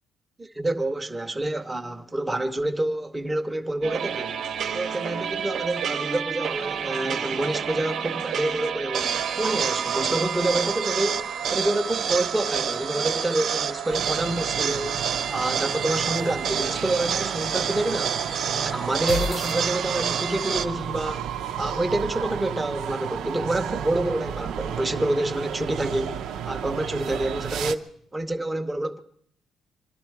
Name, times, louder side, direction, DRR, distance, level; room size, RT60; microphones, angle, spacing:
voice 1, 0.4-4.4 4.7-9.1 9.4-15.0 15.3-18.2 18.5-21.2 21.6-26.2 26.5-29.0, right 1 dB, 10° right, 0.8 m, -27 dB
sound 1, 3.8-20.7, right 8 dB, 60° right, 0.9 m, -28 dB
sound 2, 13.9-27.8, right 8 dB, 85° right, 0.7 m, -33 dB
sound 3, 19.1-20.3, left 4 dB, 55° left, 0.6 m, -32 dB
25.0 x 12.0 x 4.7 m
cardioid pair, 150°, 0 cm